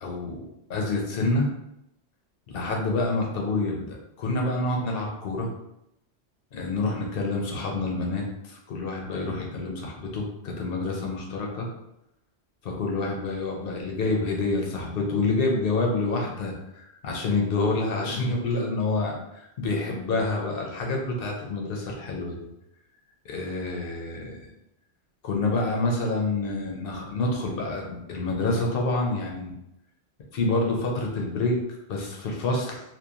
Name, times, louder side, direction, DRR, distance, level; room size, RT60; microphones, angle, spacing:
voice 1, 0.0-0.4 0.7-1.5 2.5-5.5 6.5-11.7 12.6-22.4 23.2-24.4 25.2-29.5 30.3-31.6 31.9-32.8, left 2 dB, 60° left, -1 dB, 0.8 m, -27 dB
2.8 x 2.2 x 2.4 m, 0.85 s
omnidirectional pair, 1.1 m